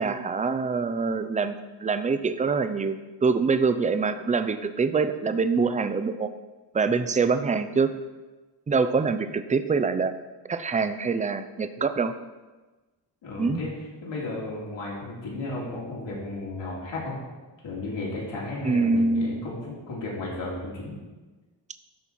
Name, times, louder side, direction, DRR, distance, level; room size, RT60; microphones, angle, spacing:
voice 1, 0.0-6.3 6.7-7.9 8.7-10.1 10.5-12.1 13.4-13.6 18.6-19.4, right 4 dB, 20° right, 10 dB, 0.4 m, -25 dB
voice 2, 13.2-13.7 14.0-17.2 17.6-21.0, left 2 dB, 80° left, -5 dB, 3.0 m, -34 dB
12.5 x 4.2 x 4.5 m, 1.2 s
cardioid pair, 110°, 45 cm